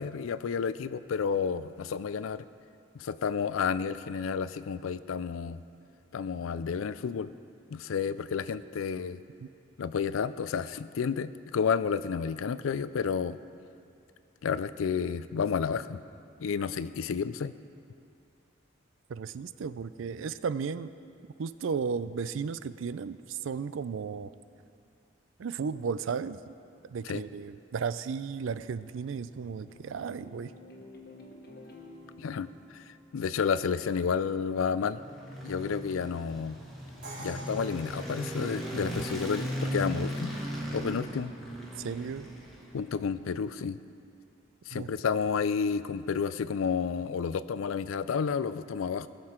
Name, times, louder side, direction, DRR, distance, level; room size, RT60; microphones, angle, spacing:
voice 1, 0.0-2.4 3.0-5.6 6.1-7.3 7.7-9.2 9.8-13.4 14.4-16.0 16.4-17.5 27.0-27.2 32.2-32.8 33.1-35.0 35.4-36.6 37.2-40.3 40.7-41.3 42.7-43.8 44.7-49.1, left 6 dB, 85° left, 15 dB, 0.4 m, -31 dB
voice 2, 19.1-20.9 21.4-24.3 25.4-26.5 26.8-30.5 41.8-42.3 44.7-44.9, right 6 dB, 75° right, 14 dB, 0.4 m, -34 dB
sound 1, 28.4-33.8, left 2 dB, 50° left, 1.2 m, -52 dB
sound 2, 34.6-43.0, equal, ahead, 1.5 m, -37 dB
Crash cymbal, 37.0-38.9, right 2 dB, 55° right, 2.1 m, -46 dB
20.0 x 6.7 x 4.4 m, 2.5 s
head